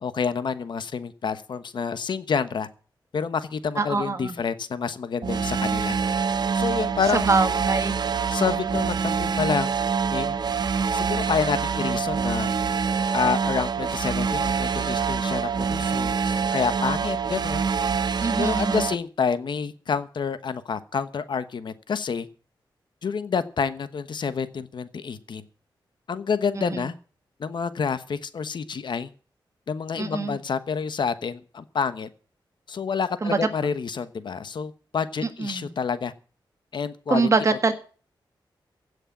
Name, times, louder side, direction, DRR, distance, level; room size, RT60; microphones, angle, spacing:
voice 1, 0.0-2.7 3.1-6.0 6.5-7.3 8.3-9.8 10.1-10.3 10.9-12.5 13.1-17.6 18.4-22.3 23.0-25.4 26.1-26.9 27.4-29.1 29.7-32.1 32.7-36.1 36.7-37.3, left 6 dB, 65° left, 12 dB, 1.1 m, -28 dB
voice 2, 3.8-4.4 7.1-7.9 18.2-18.8 26.6-26.9 30.0-30.4 33.2-33.4 35.4-35.7 37.1-37.7, right 3 dB, 35° right, 8 dB, 1.8 m, -24 dB
sound 1, 5.2-18.9, right 6 dB, 55° right, 0.8 m, -25 dB
16.0 x 6.6 x 8.6 m, 0.39 s
wide cardioid pair, 125°, 8 cm